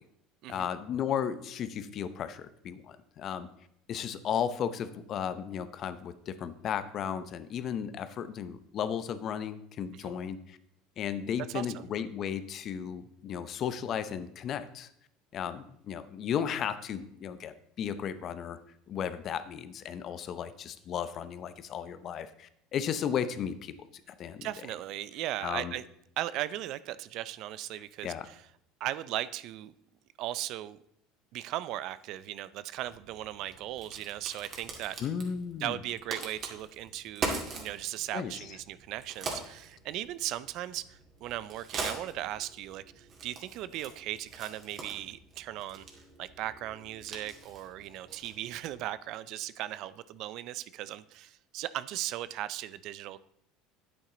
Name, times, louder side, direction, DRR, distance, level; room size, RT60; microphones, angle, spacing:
voice 1, 0.5-3.5 3.9-10.6 11.0-14.9 15.3-18.6 18.9-23.7 24.2-24.5 25.4-25.7 28.0-28.3 35.0-35.8 38.1-38.5, left 8 dB, 45° left, 13 dB, 0.7 m, -34 dB
voice 2, 24.4-25.8 26.2-28.4 28.8-29.7 30.2-30.8 31.3-35.0 35.6-45.9 46.2-53.2, right 14 dB, 60° right, 16 dB, 0.4 m, -37 dB
Crack, 32.8-48.9, right 3 dB, 40° right, 2.2 m, -43 dB
8.7 x 8.6 x 3.9 m, 0.73 s
supercardioid pair, 100°, 0 cm